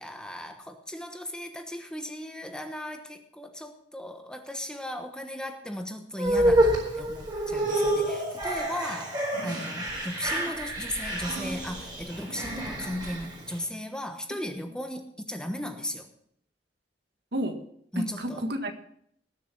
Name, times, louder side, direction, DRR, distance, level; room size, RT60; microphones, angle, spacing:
voice 1, 0.0-16.1 17.9-18.5, left 1 dB, 5° left, 1.1 m, -36 dB
sound 1, 6.2-13.6, right 1 dB, 25° right, 4.5 m, -28 dB
voice 2, 12.3-12.6 17.3-17.5 17.9-18.7, equal, 65° right, 1.8 m, -31 dB
19.5 x 7.0 x 6.0 m
head